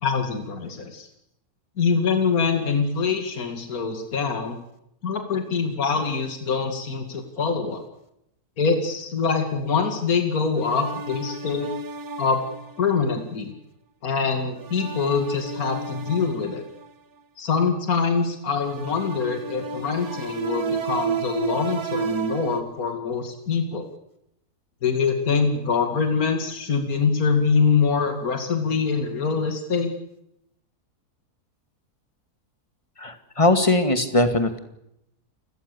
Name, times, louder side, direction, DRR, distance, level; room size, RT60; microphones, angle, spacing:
voice 1, 0.0-1.1 1.8-4.6 5.0-7.8 8.6-11.7 12.2-12.4 12.8-13.5 14.0-16.6 17.4-23.9 24.8-29.9, left 5 dB, 60° left, 6 dB, 2.8 m, -24 dB
sound 1, 10.5-13.0 14.6-16.9 18.6-22.6, right 5 dB, 65° right, 2.0 m, -32 dB
voice 2, 33.0-34.6, left 2 dB, 20° left, 8 dB, 2.2 m, -20 dB
29.5 x 17.5 x 6.9 m, 0.79 s
omnidirectional pair, 1.7 m